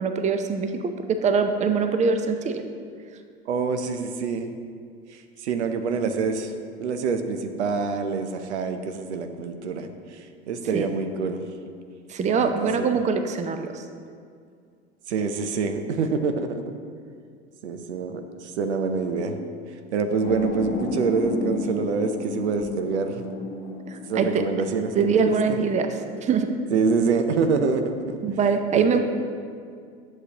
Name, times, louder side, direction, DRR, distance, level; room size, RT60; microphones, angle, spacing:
voice 1, 0.0-2.6 10.7-10.9 12.1-13.8 23.9-24.4 25.0-25.9 26.2-26.5 28.2-29.0, right 5 dB, 20° right, 7 dB, 0.6 m, -23 dB
voice 2, 3.5-4.5 5.4-6.5 6.8-9.9 10.5-11.5 12.3-12.9 15.1-16.6 17.6-19.4 19.9-23.2 24.1-25.6 26.7-28.2 28.8-29.0, right 5 dB, 80° right, 7 dB, 0.7 m, -26 dB
sound 1, 20.2-25.2, left 3 dB, 35° left, 1.1 m, -33 dB
10.5 x 6.6 x 2.9 m, 2.2 s
hypercardioid pair, 85°, 33 cm